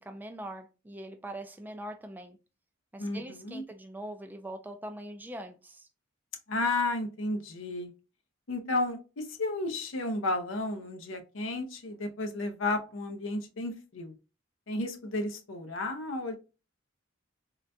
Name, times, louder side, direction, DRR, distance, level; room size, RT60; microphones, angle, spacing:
voice 1, 0.0-2.4 2.9-5.9, right 1 dB, 10° right, 0.3 m, -42 dB
voice 2, 3.0-3.6 6.5-7.9 8.5-14.1 14.7-16.4, left 2 dB, 75° left, 0.6 m, -32 dB
3.8 x 2.2 x 2.6 m
head